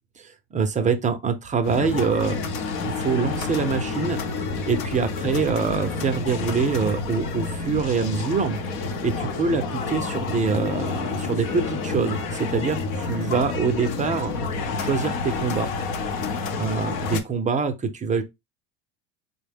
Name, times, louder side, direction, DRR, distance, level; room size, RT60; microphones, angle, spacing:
voice 1, 0.2-2.4 2.8-4.2 4.7-14.3 14.8-15.7 16.6-18.2, right 5 dB, 20° right, 0.5 m, -25 dB
sound 1, 1.6-17.2, left 4 dB, 60° left, 0.8 m, -29 dB
4.1 x 2.1 x 3.4 m
supercardioid pair, 110°, 35 cm